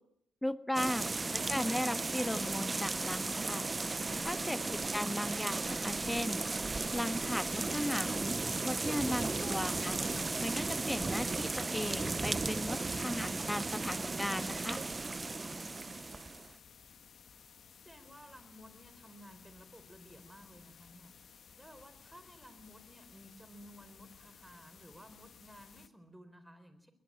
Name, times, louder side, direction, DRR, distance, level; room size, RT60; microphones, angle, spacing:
voice 1, 0.4-1.1 1.5-3.7 4.2-6.4 6.9-8.4 8.6-10.0 10.4-14.8, left 1 dB, 10° left, 11 dB, 1.5 m, -37 dB
sound 1, 0.7-16.5, right 3 dB, 25° right, 0.9 m, -35 dB
sound 2, 7.6-25.9, left 7 dB, 60° left, 1.4 m, -58 dB
voice 2, 15.4-16.4 17.2-17.3 17.8-26.9, equal, 10° right, 10 dB, 4.1 m, -56 dB
22.5 x 20.0 x 8.7 m, 0.75 s
cardioid pair, 80°, 0 cm